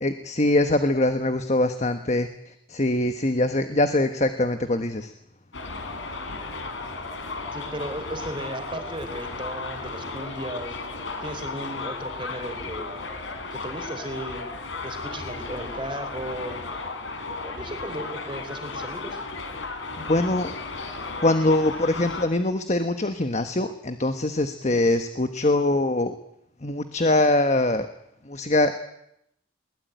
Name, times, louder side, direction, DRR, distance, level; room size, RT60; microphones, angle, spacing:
voice 1, 0.0-5.1 20.0-20.5 21.2-26.1 26.6-27.9 28.2-28.8, left 2 dB, 35° left, 8 dB, 1.3 m, -23 dB
Subway metro underground, 5.5-22.2, left 3 dB, 85° left, 3.9 m, -35 dB
voice 2, 7.5-10.8 11.2-13.0 13.5-14.5 14.8-16.6 17.4-19.2 24.6-24.8, right 1 dB, 25° right, 7 dB, 3.7 m, -35 dB
22.0 x 20.0 x 9.2 m, 0.77 s
head